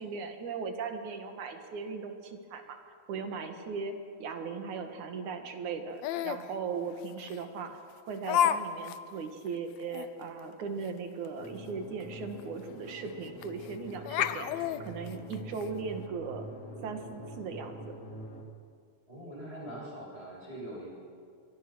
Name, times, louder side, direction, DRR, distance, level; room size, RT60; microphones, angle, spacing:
voice 1, 0.0-7.7 8.1-16.5 16.8-17.9, right 5 dB, 90° right, 6 dB, 3.2 m, -38 dB
Laughter, 6.0-6.5 7.3-7.4 8.3-8.6 8.9-9.0 9.5-9.6 9.9-10.1 12.0-12.1 12.4-12.5 13.4-13.7 14.1-15.7, left 10 dB, 75° left, 1.9 m, -29 dB
sound 1, 11.3-18.4, equal, 30° left, 2.2 m, -45 dB
voice 2, 19.1-20.9, right 1 dB, 20° right, -4 dB, 8.3 m, -42 dB
25.5 x 23.0 x 6.3 m, 2.2 s
omnidirectional pair, 3.3 m